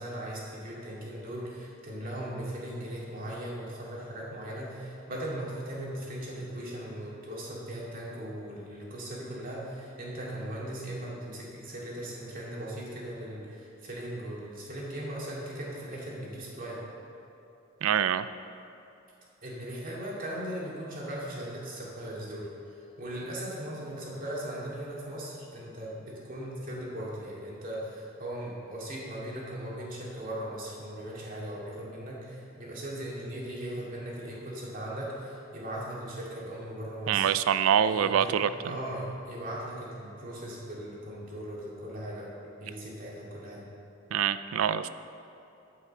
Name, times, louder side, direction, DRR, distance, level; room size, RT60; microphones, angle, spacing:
voice 1, 0.0-16.8 19.4-37.3 37.9-43.6, right 1 dB, 45° right, -5 dB, 2.2 m, -38 dB
voice 2, 17.8-18.3 37.1-38.5 44.1-44.9, right 9 dB, 90° right, 13 dB, 0.3 m, -25 dB
9.8 x 5.7 x 7.1 m, 2.9 s
head